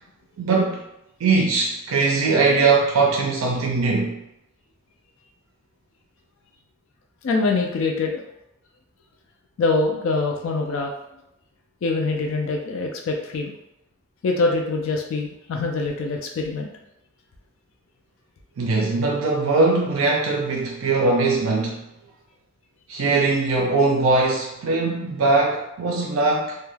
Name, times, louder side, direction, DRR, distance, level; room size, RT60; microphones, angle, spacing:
voice 1, 0.4-0.8 1.2-4.2 18.6-21.8 22.9-26.6, right 3 dB, 70° right, -1 dB, 0.4 m, -21 dB
voice 2, 7.2-8.2 9.6-10.9 11.8-13.6 14.2-16.7, left 3 dB, 65° left, 2 dB, 0.3 m, -24 dB
2.2 x 2.2 x 3.2 m, 0.84 s
head